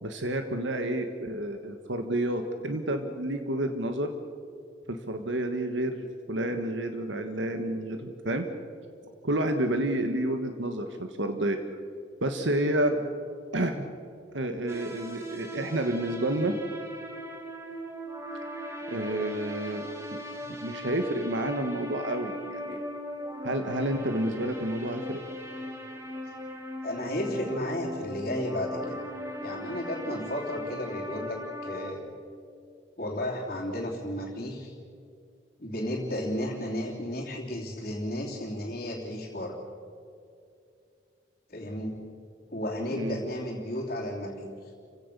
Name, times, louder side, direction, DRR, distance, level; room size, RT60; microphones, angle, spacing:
voice 1, 0.0-4.1 4.9-8.4 9.2-11.6 12.2-12.9 13.5-13.8 14.3-16.6 18.9-19.9 20.5-22.8 23.4-25.2 42.9-43.2, right 1 dB, 75° right, 6 dB, 1.4 m, -30 dB
sound 1, 14.7-31.9, equal, 15° right, 2.2 m, -39 dB
voice 2, 26.8-29.0 29.4-32.1 33.0-34.7 35.6-39.6 41.5-42.0 42.5-44.5, left 1 dB, 45° left, -6 dB, 3.2 m, -33 dB
30.0 x 16.5 x 6.8 m, 2.4 s
head